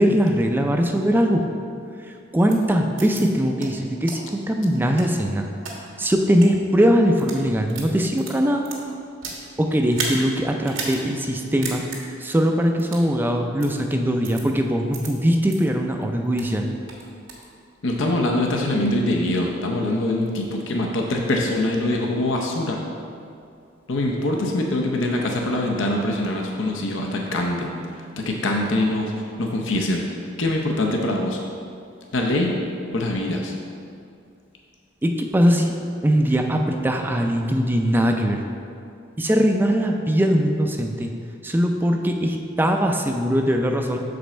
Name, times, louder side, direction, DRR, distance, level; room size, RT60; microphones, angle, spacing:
voice 1, 0.0-1.4 2.0-5.5 6.0-8.6 9.6-11.9 12.2-16.7 35.0-35.8 36.0-38.4 39.2-41.1 41.4-44.0, equal, 10° right, 3 dB, 0.4 m, -21 dB
sound 1, 2.5-2.6 3.0-3.2 3.6-3.7 4.1-4.2 4.7-5.7 6.3-6.5 7.1-7.4 7.7-9.4 9.9-10.2 10.6-11.0 11.3-11.4 11.6-12.0 12.8-13.1 13.6-13.7 14.2-14.4 14.9-15.1 15.5-15.6 16.0-16.5 16.9-17.5, right 4 dB, 85° right, 1.5 m, -33 dB
voice 2, 17.8-22.8 23.9-31.4 32.1-32.5 32.9-33.5, left 1 dB, 75° left, 0 dB, 0.7 m, -24 dB
7.0 x 5.2 x 4.4 m, 2.4 s
head